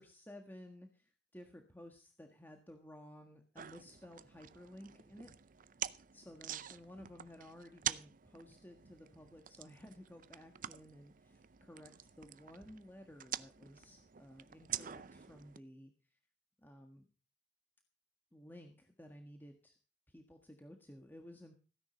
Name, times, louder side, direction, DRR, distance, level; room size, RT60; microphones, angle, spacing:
voice 1, 0.0-5.3 6.1-11.9 12.2-16.2 16.6-17.1 18.3-19.8 20.1-21.6, left 1 dB, 10° left, 4 dB, 1.6 m, -55 dB
sound 1, 3.6-15.6, right 10 dB, 50° right, 0.6 m, -46 dB
16.0 x 10.5 x 5.2 m, 0.35 s
head